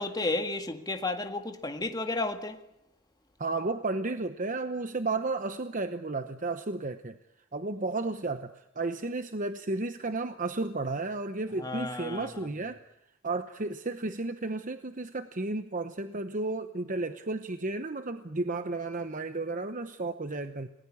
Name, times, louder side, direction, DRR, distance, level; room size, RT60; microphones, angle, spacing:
voice 1, 0.0-2.6 11.6-12.3, left 2 dB, 20° left, 1.8 m, -32 dB
voice 2, 3.4-7.2 7.5-12.8 13.2-20.7, right 3 dB, 40° right, 0.9 m, -33 dB
29.0 x 19.5 x 8.6 m
head